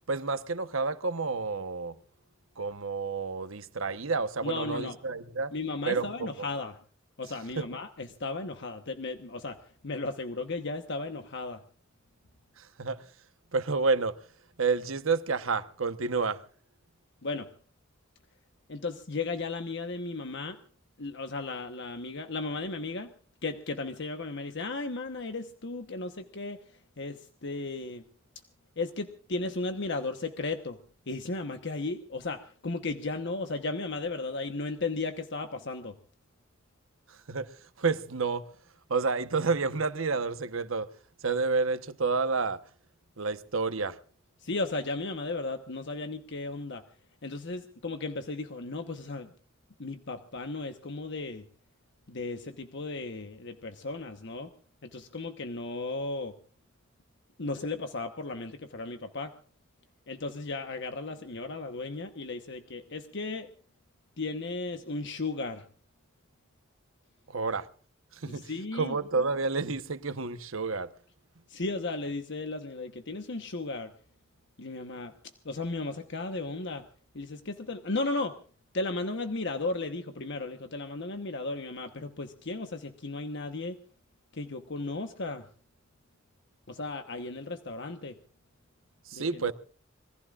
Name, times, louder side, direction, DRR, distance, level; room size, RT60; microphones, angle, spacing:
voice 1, 0.1-2.0 2.6-5.5 5.9-6.5 7.6-7.7 12.6-13.1 13.5-14.2 14.6-16.4 37.1-38.5 38.9-40.9 41.2-42.6 43.2-44.0 67.3-67.7 68.1-70.9 89.0-89.5, right 4 dB, 85° right, 1.1 m, -30 dB
voice 2, 4.4-5.0 5.5-6.7 7.2-11.6 17.2-17.5 18.7-20.6 21.0-23.1 23.4-28.0 28.8-30.8 31.1-36.0 44.4-46.8 47.2-49.3 49.8-51.5 52.1-54.5 54.8-56.4 57.4-59.4 60.1-63.5 64.2-65.7 68.3-69.0 71.5-73.9 74.6-75.1 75.4-76.9 77.1-78.4 78.7-83.8 84.3-85.5 86.7-88.2 89.1-89.4, left 3 dB, 60° left, 1.1 m, -35 dB
26.5 x 20.5 x 2.5 m
head